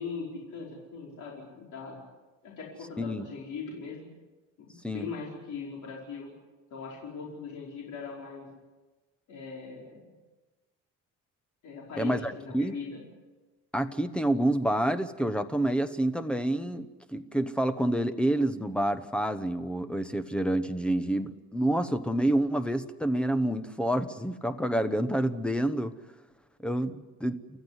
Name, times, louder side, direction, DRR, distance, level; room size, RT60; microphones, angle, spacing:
voice 1, 0.0-2.0 2.4-4.1 4.6-6.3 6.7-8.5 9.3-10.1 11.6-13.0, left 5 dB, 60° left, -3 dB, 5.2 m, -40 dB
voice 2, 12.0-12.8 13.7-25.9 26.6-27.4, right 1 dB, 5° left, 11 dB, 1.0 m, -28 dB
30.0 x 14.0 x 9.8 m, 1.2 s
cardioid pair, 155°, 33 cm